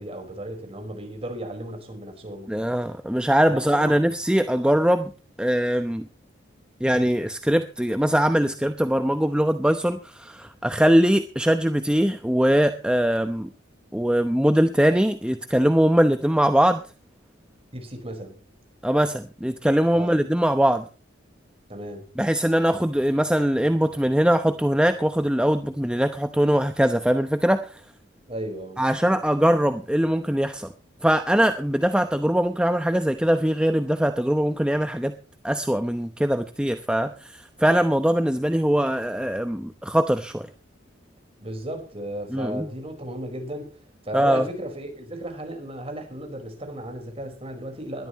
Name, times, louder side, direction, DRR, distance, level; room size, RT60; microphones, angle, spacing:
voice 1, 0.0-2.7 3.5-4.0 17.7-18.4 19.9-20.2 21.7-22.1 28.3-28.8 41.4-48.1, right 1 dB, 30° right, 4.8 m, -35 dB
voice 2, 2.5-5.1 5.4-6.1 6.8-13.5 13.9-16.8 18.8-20.8 22.2-27.8 28.8-30.7 31.0-35.1 35.4-40.5 42.3-42.7 44.1-44.5, equal, 5° right, 0.8 m, -22 dB
21.0 x 13.0 x 3.1 m
head